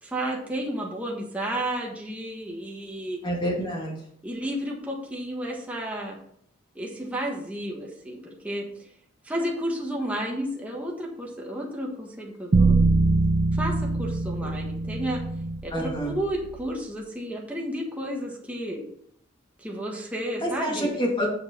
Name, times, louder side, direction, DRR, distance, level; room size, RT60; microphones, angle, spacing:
voice 1, 0.0-3.2 4.2-6.2 6.7-8.7 9.2-12.7 13.5-15.2 15.6-18.8 19.6-20.9, right 1 dB, 5° right, -2 dB, 1.4 m, -32 dB
voice 2, 3.2-3.9 15.7-16.1 20.4-21.3, equal, 25° left, -2 dB, 2.4 m, -27 dB
sound 1, 12.5-16.7, right 3 dB, 35° right, 0.4 m, -24 dB
7.6 x 6.5 x 4.4 m, 0.67 s
head